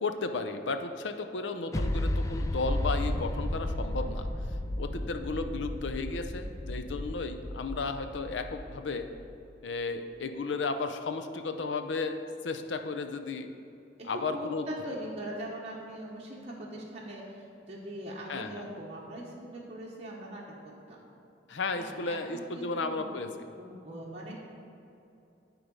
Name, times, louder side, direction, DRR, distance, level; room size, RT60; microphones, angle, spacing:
voice 1, 0.0-4.3 4.8-9.0 9.6-12.2 12.4-13.5 14.1-14.7 18.3-18.6 21.5-23.3, left 3 dB, 90° left, 7 dB, 0.6 m, -34 dB
sound 1, 1.7-9.3, left 1 dB, 15° left, 0.4 m, -33 dB
voice 2, 14.0-20.4 20.9-21.0 21.7-24.5, right 1 dB, 35° right, -5 dB, 1.2 m, -41 dB
10.0 x 4.7 x 5.3 m, 2.8 s
head